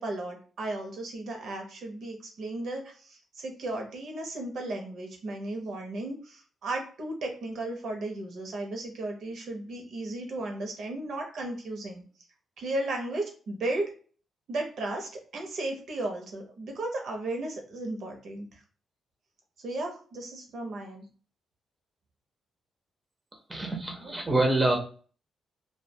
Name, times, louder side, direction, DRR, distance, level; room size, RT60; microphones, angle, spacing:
voice 1, 0.0-12.0 12.6-13.9 14.5-18.5 19.6-21.0 24.0-24.6, right 2 dB, 60° right, 0.6 m, -35 dB
voice 2, 23.5-24.8, right 2 dB, 10° right, 0.5 m, -26 dB
2.3 x 2.1 x 2.6 m
wide cardioid pair, 155°, 0 cm